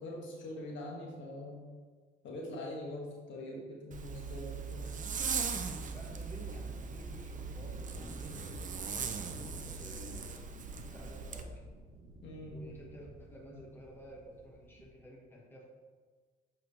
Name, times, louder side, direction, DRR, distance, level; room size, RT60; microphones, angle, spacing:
voice 1, 0.0-1.6 2.2-4.9 12.2-12.6, left 1 dB, 70° left, -2 dB, 1.5 m, -43 dB
Zipper (clothing), 3.9-11.4, right 5 dB, 40° right, 0.6 m, -39 dB
sound 1, 4.7-14.9, right 2 dB, 85° right, 1.0 m, -53 dB
voice 2, 5.7-11.6 12.5-15.7, equal, 10° left, -2 dB, 1.5 m, -53 dB
7.3 x 4.5 x 3.3 m, 1.5 s
cardioid pair, 90°, 20 cm